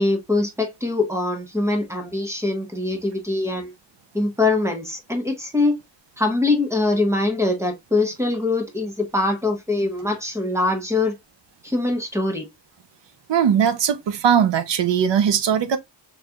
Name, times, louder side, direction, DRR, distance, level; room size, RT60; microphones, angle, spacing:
voice 1, 0.0-3.7 4.1-5.7 6.2-11.2 11.6-12.5, left 2 dB, 5° right, 1.1 m, -23 dB
voice 2, 13.3-15.8, right 8 dB, 80° right, 0.7 m, -19 dB
4.1 x 3.2 x 2.3 m
wide cardioid pair, 130°, 42 cm